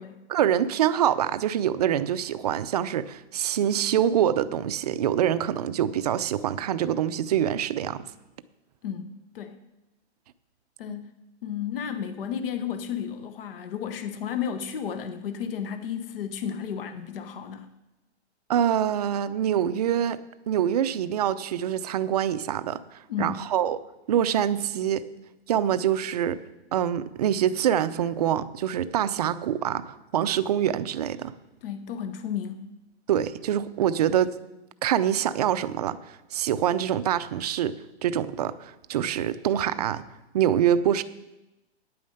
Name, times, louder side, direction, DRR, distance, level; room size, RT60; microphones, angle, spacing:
voice 1, 0.3-8.0 18.5-20.2 20.5-22.8 23.2-23.8 24.1-25.0 25.5-26.4 26.7-31.3 33.1-34.3 34.8-36.0 36.3-37.7 38.0-40.0 40.3-41.0, right 10 dB, 35° right, 13 dB, 0.5 m, -25 dB
voice 2, 8.8-9.6 10.8-11.1 11.4-17.7 23.1-23.3 31.6-32.7, left 8 dB, 55° left, 9 dB, 1.0 m, -33 dB
9.4 x 9.1 x 6.5 m, 0.97 s
hypercardioid pair, 160°, 33 cm